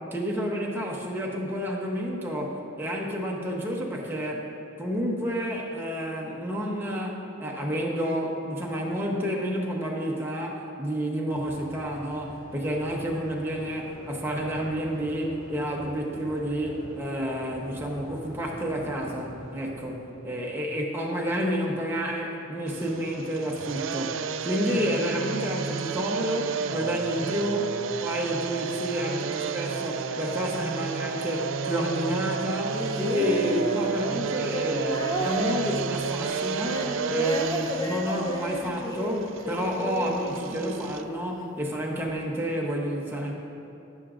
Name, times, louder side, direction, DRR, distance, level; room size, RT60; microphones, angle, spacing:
voice 1, 0.1-4.5 4.8-24.2 24.4-27.7 28.0-36.8 37.1-43.3, equal, 10° right, -2 dB, 0.9 m, -30 dB
sound 1, 11.3-20.3, left 1 dB, 90° left, 2.2 m, -44 dB
sound 2, 22.7-41.0, right 6 dB, 65° right, 0.3 m, -32 dB
sound 3, 32.7-41.1 42.1-42.2, left 1 dB, 15° left, 0.6 m, -32 dB
15.0 x 7.1 x 2.5 m, 2.6 s
head